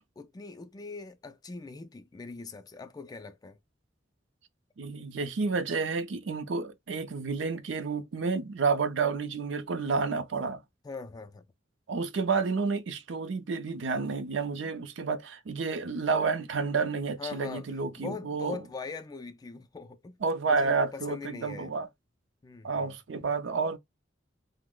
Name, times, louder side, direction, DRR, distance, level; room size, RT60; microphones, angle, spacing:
voice 1, 0.2-3.6 10.8-11.4 17.2-17.7 18.0-20.2 20.5-21.7 22.4-23.0, left 4 dB, 20° left, 0.3 m, -41 dB
voice 2, 4.8-10.6 11.9-18.6 20.2-21.9 22.6-23.8, right 4 dB, 75° right, 0.5 m, -30 dB
2.9 x 2.0 x 3.6 m
head